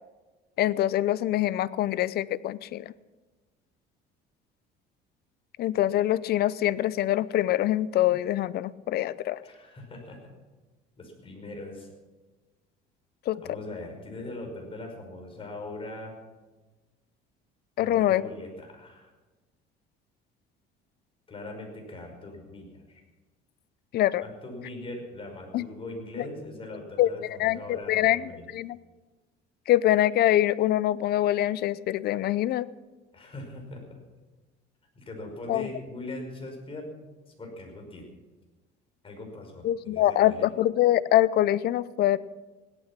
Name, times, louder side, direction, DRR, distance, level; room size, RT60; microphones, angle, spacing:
voice 1, 0.6-2.9 5.6-9.4 13.3-13.4 17.8-18.2 23.9-24.2 25.5-25.7 26.2-26.3 27.0-28.8 29.7-32.7 35.5-35.7 39.6-42.2, left 13 dB, 60° left, 19 dB, 0.6 m, -24 dB
voice 2, 9.4-10.3 11.0-11.9 13.4-16.2 17.8-19.1 21.3-23.0 24.2-28.4 33.1-34.0 35.0-36.9 37.4-38.1 39.0-40.5, left 2 dB, 30° left, 2 dB, 5.3 m, -41 dB
16.5 x 12.5 x 5.9 m, 1.2 s
cardioid pair, 110°, 19 cm